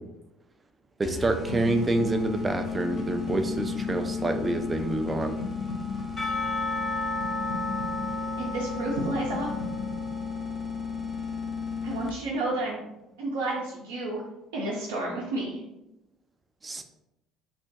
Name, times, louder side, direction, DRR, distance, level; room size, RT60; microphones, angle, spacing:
sound 1, 1.0-12.4, left 5 dB, 30° left, 0.5 m, -34 dB
voice 1, 1.0-5.4 16.6-16.8, right 2 dB, 25° right, 6 dB, 0.5 m, -27 dB
sound 2, 1.3-13.2 13.4-13.8, left 3 dB, 65° left, 1.1 m, -40 dB
Percussion / Church bell, 6.2-11.2, left 1 dB, 45° left, 1.4 m, -34 dB
voice 2, 8.4-9.5 11.8-12.8 13.2-14.2 14.5-15.6, right 2 dB, 85° right, -5 dB, 0.7 m, -30 dB
3.3 x 2.1 x 4.1 m, 0.90 s
hypercardioid pair, 65°, 0 cm